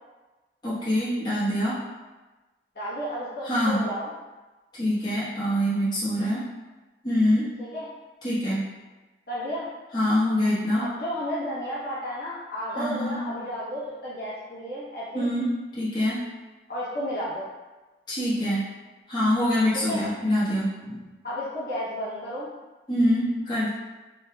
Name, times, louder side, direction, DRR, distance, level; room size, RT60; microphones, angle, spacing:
voice 1, 0.6-1.8 3.4-3.8 4.7-6.4 7.0-7.5 8.2-8.6 9.9-10.8 12.7-13.2 15.1-16.2 18.1-18.6 19.1-21.0 22.9-23.7, left 1 dB, 25° left, -11 dB, 1.1 m, -24 dB
voice 2, 2.7-4.1 7.6-7.9 9.3-9.7 10.8-15.3 16.7-17.5 19.7-20.0 21.2-22.5, equal, 60° left, -9 dB, 0.9 m, -32 dB
3.1 x 3.0 x 2.2 m, 1.2 s
head